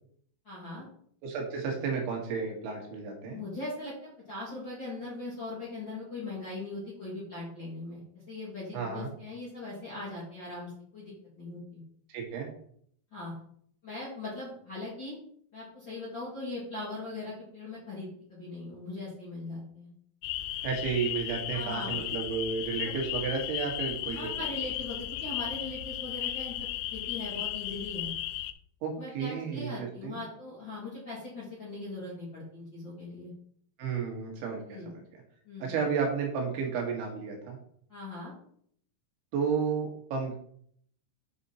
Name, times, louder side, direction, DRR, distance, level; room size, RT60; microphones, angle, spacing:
voice 1, 0.4-0.8 3.2-8.0 8.3-11.8 13.1-13.3 13.8-15.2 15.5-19.9 21.5-21.9 22.7-22.9 24.1-28.1 29.0-33.3 34.7-34.9 35.4-35.7 37.9-38.3, left 2 dB, 35° left, -8 dB, 2.0 m, -40 dB
voice 2, 1.2-3.4 8.7-9.1 12.1-12.5 20.6-24.3 28.8-30.2 33.8-35.2 35.6-37.6 39.3-40.4, right 5 dB, 75° right, 0 dB, 3.9 m, -32 dB
sound 1, 20.2-28.5, left 13 dB, 85° left, 2.9 m, -35 dB
8.2 x 5.2 x 4.2 m, 0.63 s
omnidirectional pair, 5.7 m